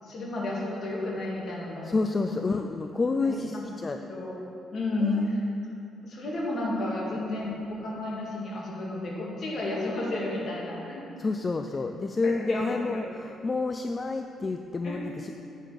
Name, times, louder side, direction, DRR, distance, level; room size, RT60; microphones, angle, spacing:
voice 1, 0.0-2.0 2.2-2.4 3.2-3.7 4.0-4.3 4.7-5.4 6.0-11.1 12.2-13.0 14.8-15.0, left 2 dB, 55° left, -3 dB, 1.9 m, -32 dB
voice 2, 1.8-4.0 5.0-5.3 11.2-15.3, left 3 dB, 30° left, 6 dB, 0.3 m, -29 dB
8.3 x 5.8 x 5.0 m, 2.8 s
cardioid pair, 90°, 0 cm